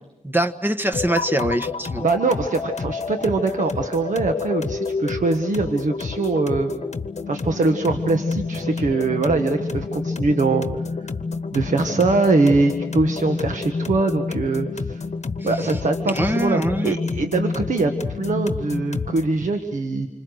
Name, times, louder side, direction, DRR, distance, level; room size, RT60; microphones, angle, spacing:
voice 1, 0.2-2.0 15.6-15.8 16.1-17.0, right 1 dB, 15° right, 9 dB, 1.3 m, -23 dB
sound 1, 0.9-19.4, left 4 dB, 60° left, 1.0 m, -29 dB
voice 2, 2.0-6.7 7.3-10.7 11.5-15.0 15.4-20.1, right 3 dB, 85° right, 6 dB, 1.4 m, -22 dB
27.5 x 25.5 x 6.5 m, 0.97 s
wide cardioid pair, 80°, 13 cm